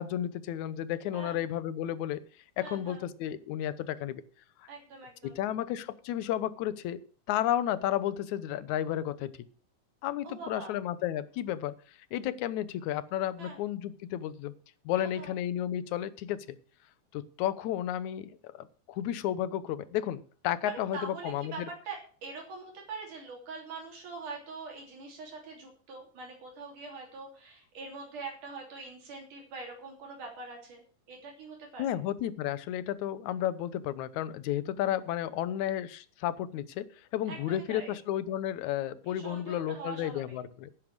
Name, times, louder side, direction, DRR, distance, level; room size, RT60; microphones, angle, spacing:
voice 1, 0.0-2.2 2.6-4.2 5.2-7.0 7.3-9.3 10.0-11.7 12.1-14.5 14.9-16.6 17.1-21.7 31.8-40.7, left 11 dB, 70° left, 15 dB, 2.1 m, -32 dB
voice 2, 2.6-3.0 4.7-5.4 10.2-10.7 13.4-13.6 14.9-15.3 20.6-32.0 37.3-38.0 39.1-40.4, right 4 dB, 70° right, 0 dB, 4.6 m, -43 dB
11.0 x 10.0 x 6.1 m, 0.40 s
omnidirectional pair, 3.8 m